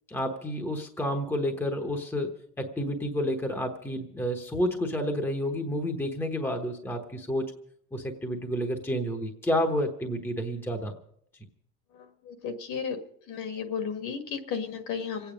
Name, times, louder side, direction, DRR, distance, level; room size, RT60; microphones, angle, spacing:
voice 1, 0.1-7.5 7.9-10.9, equal, 5° left, 4 dB, 1.1 m, -30 dB
voice 2, 11.9-15.3, left 6 dB, 55° left, 7 dB, 1.9 m, -34 dB
26.0 x 9.1 x 5.1 m, 0.69 s
cardioid pair, 150°, 37 cm